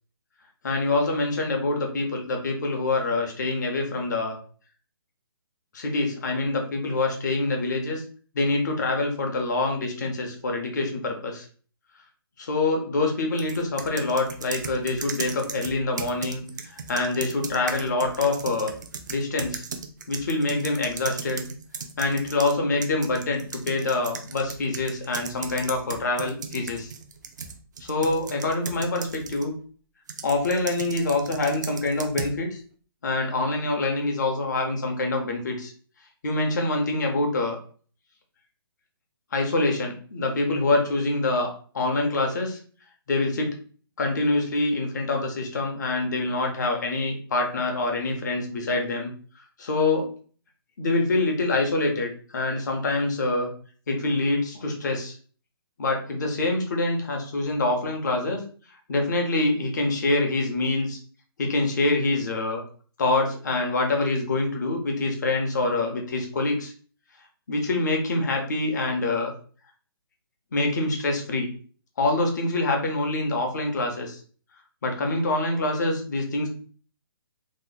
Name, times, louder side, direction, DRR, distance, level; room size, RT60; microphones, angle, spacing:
voice 1, 0.6-4.4 5.7-8.0 8.3-11.5 12.4-18.7 19.1-19.6 20.1-21.4 22.0-26.9 27.8-29.5 30.2-32.6 33.0-35.7 36.2-37.6 39.3-42.6 43.1-43.6 44.0-49.1 49.6-50.1 50.8-53.5 53.9-55.2 55.8-58.4 58.9-61.0 61.4-62.6 63.0-66.7 67.5-69.3 70.5-71.5 72.0-74.2 74.8-76.5, left 2 dB, 45° left, 2 dB, 0.8 m, -25 dB
sound 1, 13.4-22.5 22.8-29.5 30.1-32.4, right 5 dB, 45° right, 0.5 m, -37 dB
3.0 x 2.1 x 3.9 m, 0.43 s
hypercardioid pair, 175°, 13 cm